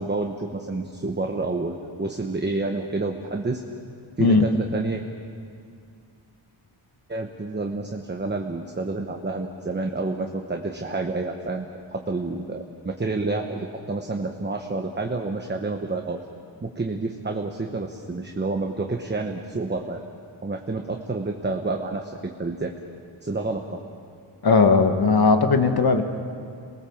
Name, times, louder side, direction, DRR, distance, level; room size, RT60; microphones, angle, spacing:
voice 1, 0.0-3.6 4.2-5.0 7.1-16.2 16.6-20.0 20.4-22.7 23.2-23.8, right 3 dB, 20° right, 3 dB, 1.1 m, -29 dB
voice 2, 24.4-26.1, left 4 dB, 50° left, 6 dB, 1.6 m, -18 dB
27.5 x 20.0 x 7.2 m, 2.3 s
wide cardioid pair, 140°, 48 cm